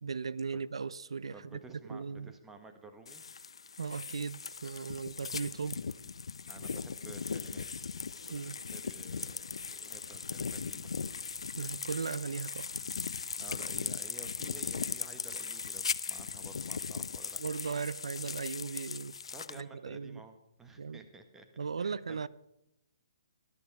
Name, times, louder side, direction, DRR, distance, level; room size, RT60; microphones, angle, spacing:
voice 1, 0.0-1.6 1.9-2.3 3.8-5.8 8.3-8.6 11.6-12.8 17.4-19.2 19.5-20.2 20.8-21.0 21.6-22.3, right 5 dB, 85° right, 0.4 m, -37 dB
voice 2, 1.3-3.2 6.5-7.7 8.1-11.0 13.4-17.4 19.3-21.5 21.8-22.3, right 2 dB, 10° right, 1.2 m, -52 dB
sound 1, 3.1-19.6, left 5 dB, 80° left, 0.5 m, -39 dB
13.5 x 11.0 x 4.7 m
hypercardioid pair, 150°, 3 cm